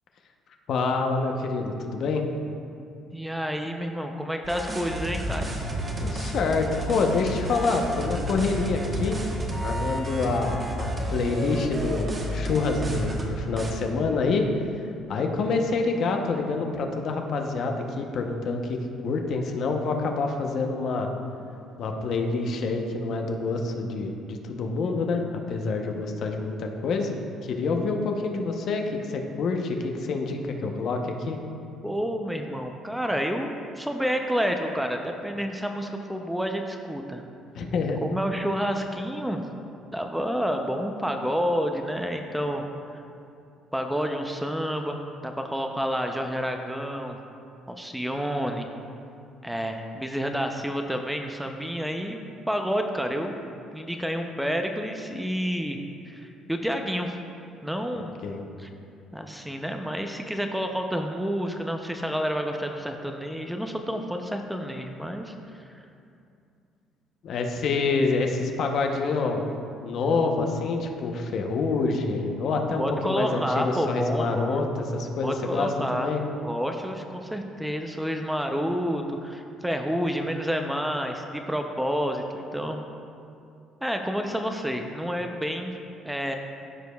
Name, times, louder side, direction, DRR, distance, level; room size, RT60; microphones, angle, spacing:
voice 1, 0.7-2.3 6.0-9.2 9.6-14.5 15.1-21.1 21.8-25.2 25.5-27.1 27.4-31.4 37.5-38.0 58.2-58.4 67.2-69.4 69.8-74.7 74.9-76.2, left 3 dB, 60° left, 3 dB, 0.7 m, -27 dB
voice 2, 3.1-5.5 31.8-37.2 38.0-39.4 39.9-42.6 42.9-43.0 43.7-47.2 47.7-48.7 49.4-52.2 52.5-53.3 53.7-55.8 56.1-57.1 57.6-58.1 58.6-58.7 59.1-65.3 72.8-74.6 75.2-76.1 76.4-82.8 83.8-85.7 86.0-86.4, equal, 5° right, 4 dB, 0.5 m, -29 dB
sound 1, 4.4-13.2 13.6-13.7, right 1 dB, 30° right, 1.0 m, -31 dB
14.0 x 5.1 x 2.3 m, 2.5 s
cardioid pair, 105°, 0 cm